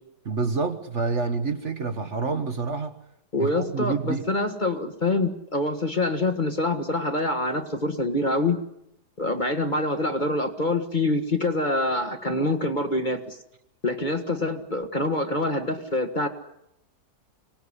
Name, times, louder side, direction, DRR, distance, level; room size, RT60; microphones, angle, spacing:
voice 1, 0.3-3.0 3.4-4.2, right 4 dB, 45° right, 8 dB, 1.5 m, -27 dB
voice 2, 3.3-8.6 9.2-13.4 13.8-16.3, left 2 dB, 30° left, 6 dB, 1.7 m, -25 dB
25.0 x 18.5 x 9.9 m, 0.80 s
omnidirectional pair, 1.8 m